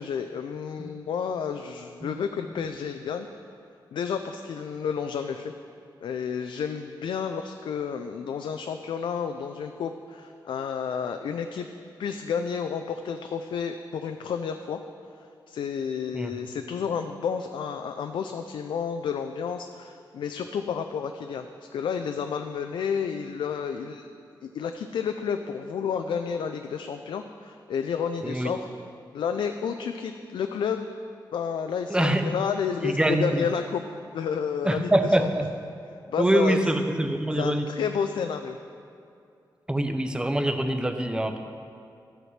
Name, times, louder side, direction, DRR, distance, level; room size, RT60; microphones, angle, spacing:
voice 1, 0.0-3.3 3.9-5.5 6.0-11.7 12.0-14.8 15.5-21.5 21.7-24.1 24.4-28.7 29.1-30.9 31.3-33.8 34.1-35.3 36.1-36.6 37.4-38.6, left 7 dB, 90° left, 7 dB, 0.4 m, -31 dB
voice 2, 31.9-32.3 32.8-33.4 34.6-35.5 36.2-37.7 39.7-41.4, right 1 dB, 10° right, 6 dB, 0.6 m, -24 dB
13.0 x 7.8 x 3.2 m, 2.4 s
wide cardioid pair, 95°, 8 cm